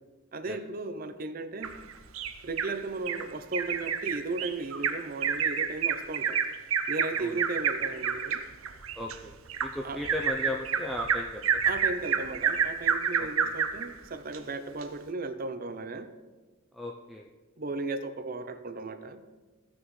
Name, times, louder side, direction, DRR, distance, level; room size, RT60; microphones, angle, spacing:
voice 1, 0.3-1.7 2.4-6.4 6.9-8.4 9.8-10.0 11.6-16.1 17.6-19.2, right 3 dB, 45° right, 10 dB, 0.6 m, -36 dB
Bird vocalization bird call bird song, 1.6-2.7 3.1-3.2 3.5-13.9 14.3-14.4 14.8-14.9, right 7 dB, 90° right, 0.7 m, -29 dB
voice 2, 9.0-9.4 9.6-11.6 13.2-13.5 16.7-17.3, left 1 dB, ahead, -2 dB, 0.5 m, -36 dB
16.0 x 6.1 x 3.2 m, 1.3 s
head